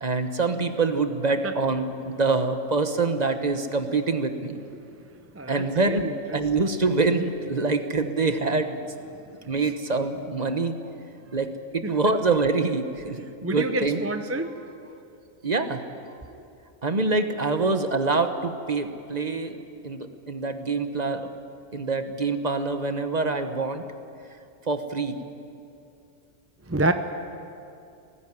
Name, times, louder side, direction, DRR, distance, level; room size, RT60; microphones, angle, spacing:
voice 1, 0.0-4.6 5.5-8.8 9.5-10.7 11.3-14.0 15.4-15.8 16.8-21.3 21.7-23.8 24.7-25.2, right 3 dB, 35° right, 8 dB, 1.1 m, -25 dB
voice 2, 5.4-6.0 13.4-14.5 26.7-26.9, right 2 dB, 15° right, 8 dB, 0.5 m, -27 dB
18.0 x 15.5 x 9.5 m, 2.6 s
omnidirectional pair, 1.3 m